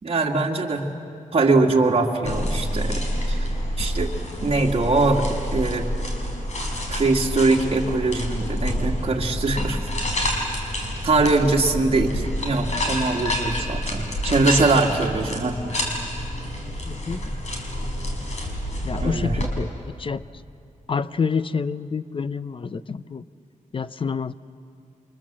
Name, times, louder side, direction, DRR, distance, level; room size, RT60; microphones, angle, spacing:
voice 1, 0.0-0.8 1.3-3.0 3.3-3.5 3.8-4.1 4.4-5.2 5.5-5.9 6.9-9.8 11.0-15.6 19.0-19.4, right 3 dB, 45° right, -1 dB, 2.1 m, -22 dB
sound 1, 2.2-19.5, equal, 55° left, 5.3 m, -28 dB
voice 2, 16.9-17.2 18.8-20.2 20.9-23.2 23.7-24.3, left 5 dB, 40° left, 14 dB, 0.6 m, -28 dB
29.0 x 25.0 x 7.5 m, 2.4 s
wide cardioid pair, 135°, 14 cm